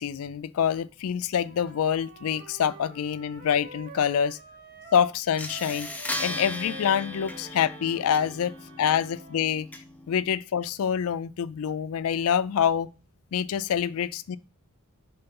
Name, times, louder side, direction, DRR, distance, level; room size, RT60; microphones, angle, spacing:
voice 1, 0.0-4.4 4.9-5.9 6.2-9.7 10.1-12.9 13.3-14.4, left 8 dB, 65° left, 0.4 m, -26 dB
Wind instrument woodwind instrument, 1.4-5.1 5.4-9.5, right 2 dB, 40° right, 1.2 m, -46 dB
sound 1, 4.9-5.0 5.4-10.3, left 1 dB, 5° left, 0.7 m, -37 dB
5.6 x 3.8 x 5.2 m
head